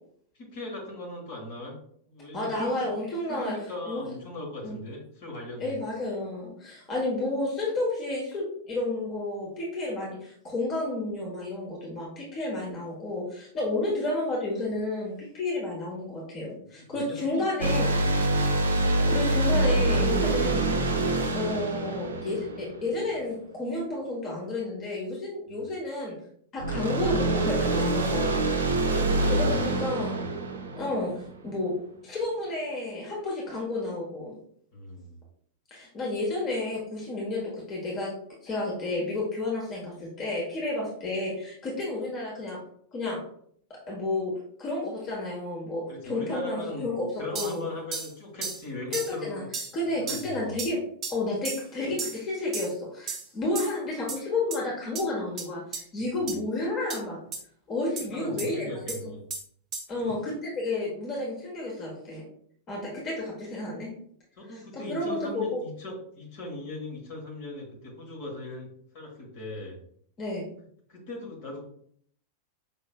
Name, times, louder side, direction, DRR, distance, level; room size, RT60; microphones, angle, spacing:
voice 1, 0.3-1.8 2.1-2.9 3.3-5.8 16.7-17.7 25.5-25.7 28.6-30.2 34.7-35.2 45.9-46.9 47.2-49.5 49.8-50.5 58.0-59.2 60.0-60.1 64.4-68.7 68.9-69.8 70.9-71.6, left 2 dB, 50° left, -1 dB, 1.4 m, -39 dB
voice 2, 2.3-3.5 3.9-4.1 4.6-4.8 5.6-17.9 18.9-20.8 21.3-26.2 26.5-28.4 29.3-30.2 30.8-31.8 32.0-34.3 35.7-38.1 38.4-42.6 42.9-43.2 43.7-47.0 47.3-47.7 48.9-49.4 49.7-50.8 51.1-57.2 57.7-58.7 59.0-59.1 59.9-62.2 62.7-63.9 64.5-64.6 64.9-65.6 70.2-70.5, left 2 dB, 30° left, -3 dB, 1.2 m, -31 dB
sound 1, 17.6-23.1 26.6-31.3, right 2 dB, 70° right, 0.5 m, -26 dB
sound 2, 47.3-47.5 47.9-48.1 48.4-48.6 48.9-49.1 49.5-49.7 50.1-50.3 50.6-50.7 51.0-51.2 51.4-51.6 52.0-52.2 52.5-52.7 53.1-53.3 53.5-53.7 54.1-54.2 54.5-54.6 54.9-55.0 55.4-55.5 55.7-55.8 56.3-56.4 56.9-57.0 57.3-57.4 58.0-58.1 58.4-58.5 58.9-59.0 59.3-59.4 59.7-59.8, right 5 dB, 30° right, 0.8 m, -34 dB
5.5 x 3.0 x 2.3 m, 0.63 s
figure-of-eight pair, 90°, 0 cm